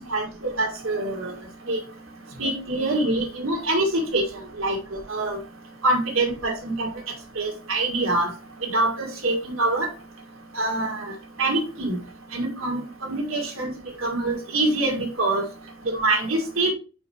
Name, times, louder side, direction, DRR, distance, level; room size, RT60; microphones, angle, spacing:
voice 1, 0.1-1.3 1.7-1.8 2.4-4.8 5.1-5.4 5.8-6.9 7.4-8.3 8.7-9.9 10.5-11.1 11.4-12.0 12.3-13.7 14.0-15.5 15.9-16.7, right 2 dB, 65° right, 0 dB, 2.0 m, -25 dB
5.6 x 4.4 x 4.3 m, 0.34 s
head